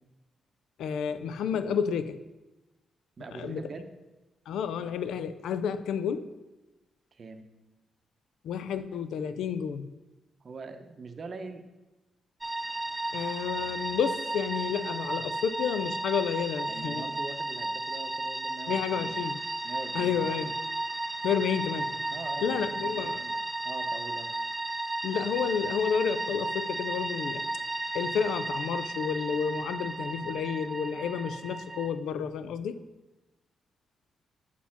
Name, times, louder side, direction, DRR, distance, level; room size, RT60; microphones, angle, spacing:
voice 1, 0.8-2.2 3.3-3.6 4.5-6.3 8.4-9.9 13.1-17.1 18.7-19.4 19.9-20.5 21.2-22.0 22.4-23.2 25.0-27.4 27.9-32.8, left 7 dB, 85° left, 12 dB, 0.4 m, -30 dB
voice 2, 3.2-3.9 7.1-7.4 10.4-11.6 16.7-19.3 19.6-20.3 22.1-23.4 23.6-24.3, right 4 dB, 50° right, 8 dB, 0.7 m, -43 dB
sound 1, 12.4-31.9, right 2 dB, 15° right, 0.4 m, -34 dB
5.6 x 4.3 x 5.7 m, 1.1 s
cardioid pair, 75°, 0 cm